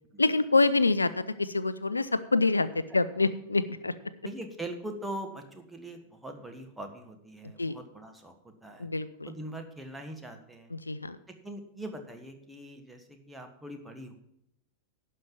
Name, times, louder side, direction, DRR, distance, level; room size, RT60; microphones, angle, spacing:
voice 1, 0.2-3.9 7.4-7.8 8.8-9.3 10.7-11.2, left 3 dB, 80° left, 15 dB, 0.4 m, -26 dB
voice 2, 4.2-8.9 9.2-10.7 11.4-14.1, right 1 dB, 5° right, 4 dB, 1.4 m, -42 dB
11.0 x 5.6 x 7.4 m, 0.77 s
figure-of-eight pair, 90°, 0 cm